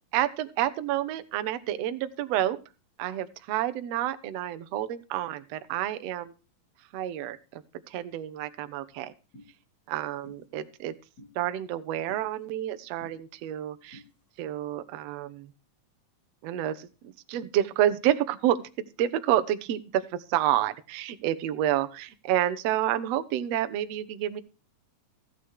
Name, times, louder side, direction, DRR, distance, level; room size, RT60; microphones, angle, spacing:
voice 1, 0.1-2.6 3.0-6.3 6.9-7.4 7.9-9.1 9.9-10.9 11.3-14.0 14.4-15.5 16.4-24.4, right 12 dB, 70° right, 11 dB, 1.5 m, -29 dB
sound 1, 9.3-9.5 10.2-10.4 11.2-11.3 12.1-12.2 13.0-13.1 13.9-14.1, equal, 50° left, 4.1 m, -49 dB
15.0 x 8.1 x 4.7 m, 0.34 s
omnidirectional pair, 4.0 m